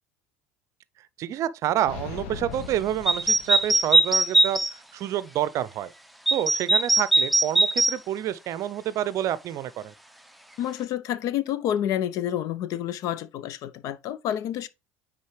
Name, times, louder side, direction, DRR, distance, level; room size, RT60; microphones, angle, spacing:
voice 1, 1.2-5.9 6.3-9.9, right 11 dB, 50° right, 0.6 m, -28 dB
sound 1, 1.8-4.0, left 6 dB, 70° left, 1.0 m, -39 dB
sound 2, 3.1-4.7 6.3-7.9, right 2 dB, ahead, 0.7 m, -20 dB
voice 2, 10.6-14.7, left 11 dB, 55° left, 0.6 m, -29 dB
9.4 x 3.8 x 3.2 m
hypercardioid pair, 70°, 7 cm